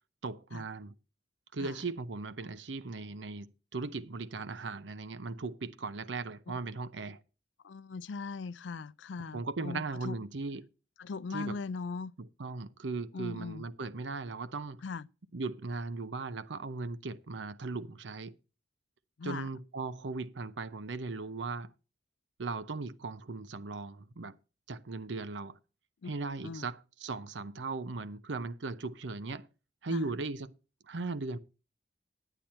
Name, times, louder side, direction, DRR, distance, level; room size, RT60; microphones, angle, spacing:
voice 1, 0.2-0.9 1.5-7.2 9.3-10.7 11.3-11.6 12.2-14.8 15.3-18.3 19.2-21.7 22.4-24.3 24.7-25.6 26.0-29.5 29.8-30.5 30.9-31.4, right 3 dB, 85° right, 0.7 m, -38 dB
voice 2, 7.6-10.2 11.0-12.1 13.1-13.6 14.8-15.1 19.2-19.5 26.0-26.1 26.4-26.7 29.9-30.1, left 4 dB, 85° left, 0.4 m, -40 dB
10.5 x 9.0 x 4.3 m
head